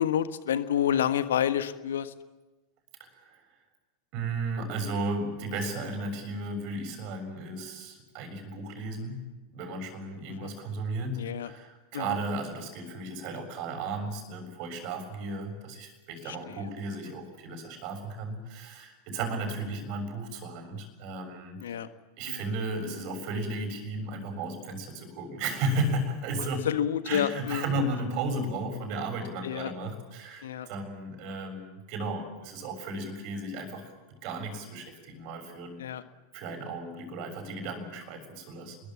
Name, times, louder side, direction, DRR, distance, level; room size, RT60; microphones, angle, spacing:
voice 1, 0.0-2.1 10.4-10.5 11.2-11.5 11.9-12.2 16.2-16.7 21.6-21.9 22.3-22.4 26.6-27.7 29.4-29.7 30.4-30.7 35.8-36.0, left 10 dB, 60° left, 12 dB, 1.4 m, -29 dB
voice 2, 3.0-3.4 4.1-9.2 9.5-21.6 22.2-26.6 27.1-35.8 36.3-38.8, right 2 dB, 45° right, 6 dB, 6.9 m, -34 dB
28.5 x 22.0 x 7.5 m, 1.2 s
figure-of-eight pair, 90°, 0 cm